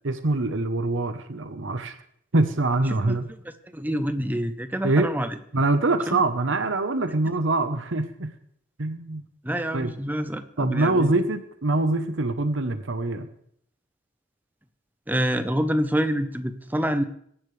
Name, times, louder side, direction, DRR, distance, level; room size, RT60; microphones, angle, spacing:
voice 1, 0.0-2.0 2.3-3.3 4.8-5.1 5.5-8.3 8.8-9.3 9.7-9.9 10.6-13.3, right 2 dB, 75° right, 9 dB, 1.0 m, -24 dB
voice 2, 3.4-5.4 6.1-6.2 9.4-11.1 15.1-17.0, equal, 10° right, 9 dB, 0.8 m, -27 dB
22.0 x 10.5 x 3.3 m, 0.67 s
head